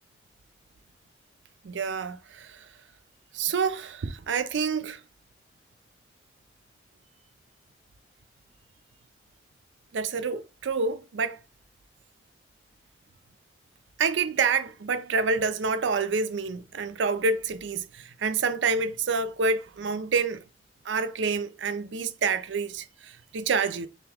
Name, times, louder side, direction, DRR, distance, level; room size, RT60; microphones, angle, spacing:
voice 1, 1.6-2.7 3.3-5.0 9.9-11.4 14.0-20.4 20.9-23.9, right 4 dB, 90° right, 0.5 m, -28 dB
3.5 x 2.6 x 3.4 m
head